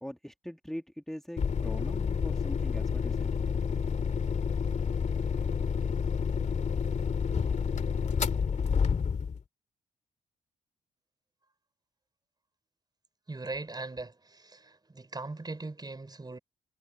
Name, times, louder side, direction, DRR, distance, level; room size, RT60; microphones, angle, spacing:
voice 1, 0.0-3.3, equal, ahead, 1.9 m, -42 dB
sound 1, 1.4-9.4, left 6 dB, 50° left, 2.3 m, -29 dB
voice 2, 13.3-16.4, right 3 dB, 25° right, 4.3 m, -40 dB
supercardioid pair, 50°, 15 cm